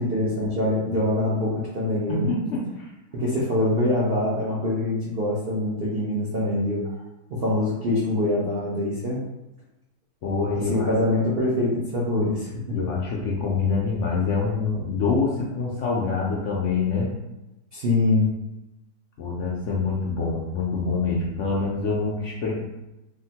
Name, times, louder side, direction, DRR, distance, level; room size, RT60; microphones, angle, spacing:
voice 1, 0.0-2.3 3.1-6.8 7.3-9.2 10.6-12.8 17.7-18.3, left 1 dB, 60° right, -6 dB, 0.6 m, -24 dB
voice 2, 2.1-2.9 10.2-10.9 12.7-17.1 19.2-22.5, left 4 dB, 75° left, -4 dB, 0.7 m, -25 dB
3.5 x 2.1 x 2.7 m, 0.95 s
omnidirectional pair, 1.8 m